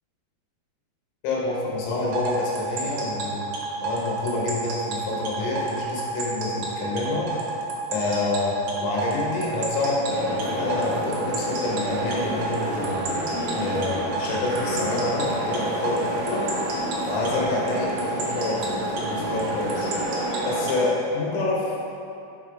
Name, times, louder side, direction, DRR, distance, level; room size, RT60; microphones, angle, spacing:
voice 1, 1.2-3.5 3.8-7.3 7.9-13.2 13.5-16.7 17.0-19.9 20.4-21.7, left 2 dB, 80° left, -4 dB, 1.5 m, -27 dB
sound 1, 2.1-20.9, right 3 dB, 80° right, 2.9 m, -30 dB
sound 2, 10.1-20.7, equal, 65° right, 1.3 m, -30 dB
6.5 x 3.4 x 4.7 m, 2.7 s
omnidirectional pair, 4.7 m